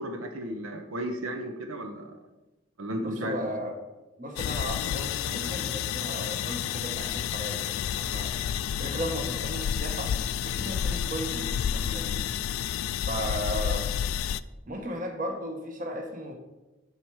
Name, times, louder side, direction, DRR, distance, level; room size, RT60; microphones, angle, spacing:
voice 1, 0.0-2.1 2.8-3.5, right 1 dB, 80° right, 4 dB, 0.8 m, -34 dB
voice 2, 3.0-3.7 4.2-8.3 8.8-10.1 10.4-12.2 13.1-13.9 14.7-16.3, equal, 40° right, 4 dB, 1.0 m, -35 dB
sound 1, 4.4-14.4, left 9 dB, 80° left, 0.3 m, -30 dB
7.8 x 5.8 x 4.7 m, 1.1 s
head